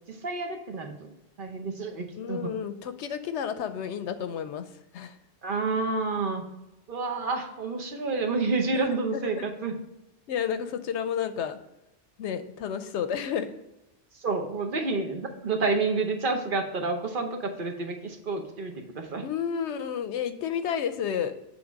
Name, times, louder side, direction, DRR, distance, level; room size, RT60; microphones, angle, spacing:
voice 1, 0.1-0.9 1.4-2.5 5.4-6.4 6.9-9.8 14.2-19.3, right 3 dB, 50° right, 4 dB, 0.9 m, -29 dB
voice 2, 2.2-4.7 4.9-5.1 8.7-8.9 9.2-9.4 10.3-11.6 12.2-13.5 19.2-21.3, left 8 dB, 75° left, 10 dB, 0.9 m, -31 dB
7.9 x 3.5 x 5.1 m, 0.93 s
omnidirectional pair, 1.2 m